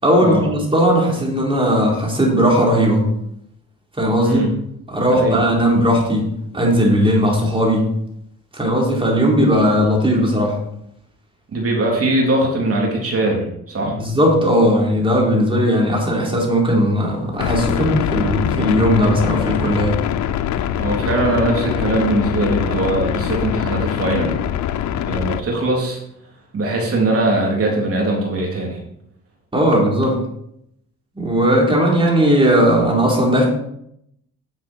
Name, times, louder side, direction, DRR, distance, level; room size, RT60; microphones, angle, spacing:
voice 1, 0.0-3.0 4.0-4.4 4.9-7.9 8.5-10.6 14.0-20.0 29.5-30.2 31.1-33.4, equal, 15° right, -2 dB, 4.2 m, -17 dB
voice 2, 5.1-5.4 11.5-14.0 20.8-24.4 25.1-26.0 26.5-28.8, right 2 dB, 50° right, -1 dB, 3.6 m, -20 dB
sound 1, 17.4-25.4, left 10 dB, 70° left, 0.7 m, -23 dB
10.5 x 7.5 x 4.6 m, 0.75 s
cardioid pair, 90°, 30 cm